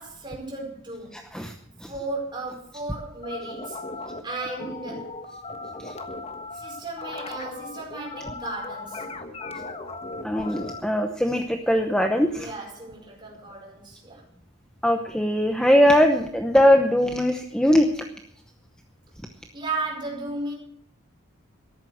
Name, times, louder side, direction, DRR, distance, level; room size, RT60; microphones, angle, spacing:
voice 1, 0.0-1.2 1.9-3.8 4.2-5.2 6.5-9.1 12.4-14.2 19.5-20.5, right 3 dB, 20° right, -1 dB, 4.9 m, -35 dB
voice 2, 1.1-1.5 1.8-1.9 5.8-5.9 10.2-12.5 14.8-18.0, equal, 5° left, 4 dB, 0.8 m, -21 dB
sound 1, 3.2-10.8, left 3 dB, 30° left, 1.3 m, -37 dB
13.5 x 11.5 x 6.3 m, 0.66 s
head